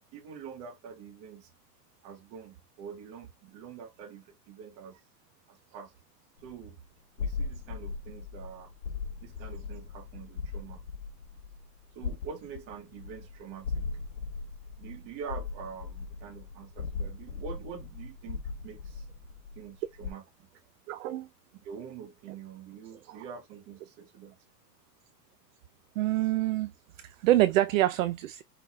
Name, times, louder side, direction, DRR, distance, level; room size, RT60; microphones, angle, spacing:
voice 1, 0.1-1.5 2.0-5.0 5.5-5.9 6.4-6.8 7.2-8.7 9.2-10.8 11.9-13.8 14.8-19.1 19.5-20.5 21.6-24.4, right 7 dB, 30° right, 1.0 m, -45 dB
sound 1, 6.4-6.7 7.2-20.1, left 4 dB, 80° left, 1.2 m, -39 dB
voice 2, 20.9-21.3 23.0-23.2 26.0-26.7 27.0-28.4, right 15 dB, 55° right, 0.5 m, -26 dB
5.7 x 3.9 x 2.4 m
supercardioid pair, 170°, 49 cm